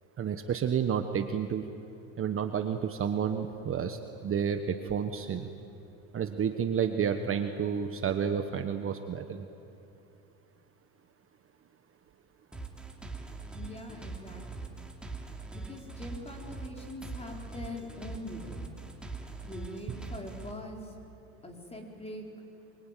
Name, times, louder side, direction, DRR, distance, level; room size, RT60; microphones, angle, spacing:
voice 1, 0.2-1.6 2.2-5.5 6.1-9.4, right 7 dB, 30° right, 7 dB, 1.3 m, -30 dB
sound 1, 12.5-20.5, right 3 dB, ahead, 2.8 m, -42 dB
voice 2, 13.5-14.8 15.5-18.6 19.4-20.9 21.4-22.3, left 1 dB, 15° left, 1 dB, 4.5 m, -43 dB
26.0 x 23.5 x 9.2 m, 2.8 s
supercardioid pair, 115°, 42 cm